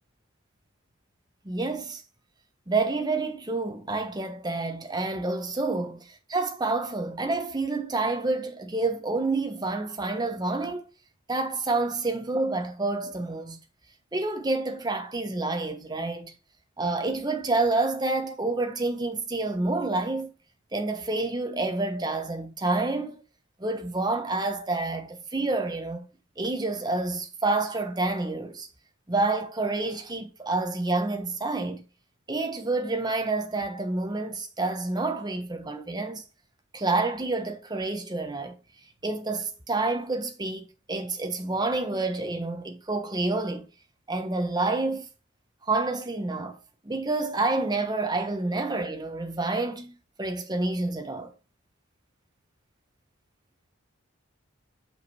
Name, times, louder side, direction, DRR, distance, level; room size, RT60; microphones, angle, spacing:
voice 1, 1.4-2.0 2.7-10.9 11.3-13.6 14.1-16.3 16.8-20.3 20.7-23.2 23.6-26.1 26.4-28.7 29.1-31.8 32.3-36.2 36.7-38.5 39.0-43.7 44.1-45.1 45.7-46.6 46.8-49.9 50.2-51.3, right 3 dB, 20° right, 1.2 m, -28 dB
5.8 x 5.1 x 4.8 m
head